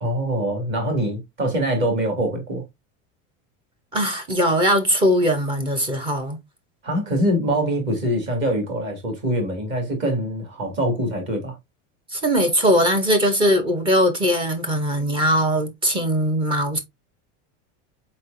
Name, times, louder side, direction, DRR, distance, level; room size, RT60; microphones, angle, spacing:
voice 1, 0.0-2.6 6.8-11.6, right 1 dB, 30° right, 1.8 m, -24 dB
voice 2, 3.9-6.4 12.1-16.8, equal, 15° right, 0.6 m, -20 dB
4.2 x 4.1 x 2.5 m
supercardioid pair, 175°, 38 cm